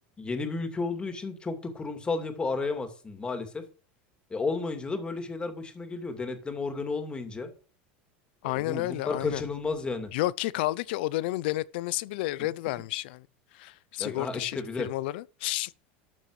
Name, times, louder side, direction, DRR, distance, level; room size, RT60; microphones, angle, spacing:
voice 1, 0.2-3.6 4.3-7.5 8.4-10.1 14.0-14.9, left 3 dB, 20° left, 2.6 m, -32 dB
voice 2, 8.4-9.4 10.1-13.3 13.5-15.7, left 17 dB, 75° left, 0.6 m, -31 dB
13.0 x 7.4 x 4.9 m
supercardioid pair, 125°, 6 cm